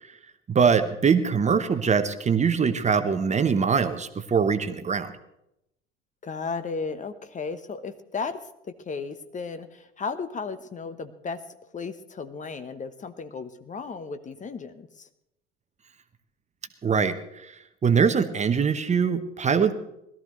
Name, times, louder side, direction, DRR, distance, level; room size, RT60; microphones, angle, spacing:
voice 1, 0.5-5.1 16.8-17.5 17.8-19.7, right 6 dB, 25° right, 10 dB, 1.0 m, -23 dB
voice 2, 6.2-8.4 8.8-11.4 11.7-15.1, left 4 dB, 25° left, 10 dB, 1.0 m, -34 dB
20.5 x 13.5 x 3.1 m, 0.83 s
figure-of-eight pair, 70°, 30 cm